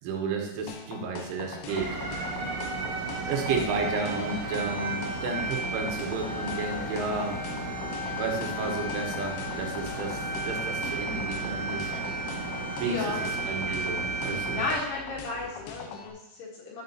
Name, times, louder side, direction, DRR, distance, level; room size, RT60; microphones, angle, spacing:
voice 1, 0.0-1.9 3.3-7.4 8.2-11.9 12.8-14.6, right 4 dB, 80° right, 2 dB, 3.6 m, -32 dB
sound 1, 0.7-16.1, left 5 dB, 85° left, 2.2 m, -42 dB
sound 2, 1.7-14.7, right 2 dB, 65° right, 2.7 m, -33 dB
voice 2, 12.8-13.2 14.3-16.8, left 3 dB, 65° left, -3 dB, 3.1 m, -34 dB
9.9 x 7.9 x 2.8 m, 0.89 s
omnidirectional pair, 5.5 m